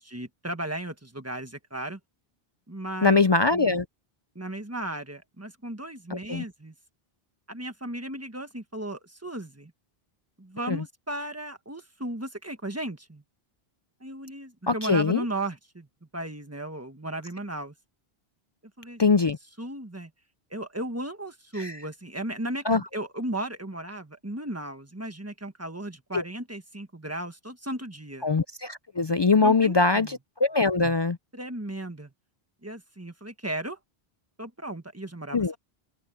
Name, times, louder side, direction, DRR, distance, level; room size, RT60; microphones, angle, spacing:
voice 1, 0.0-2.0 2.7-3.2 3.5-3.8 4.3-6.7 7.5-9.7 10.4-13.2 14.0-15.9 16.1-17.7 18.8-19.0 19.6-20.1 20.5-28.3 29.4-30.1 31.3-32.1 32.6-33.8 34.4-35.6, right 1 dB, 15° right, 1.4 m, -35 dB
voice 2, 3.0-3.9 6.1-6.4 10.7-10.8 14.7-15.2 19.0-19.4 21.6-21.7 22.7-22.8 26.1-26.2 28.2-31.2 35.3-35.5, left 4 dB, 45° left, 0.3 m, -22 dB
omnidirectional pair, 1.0 m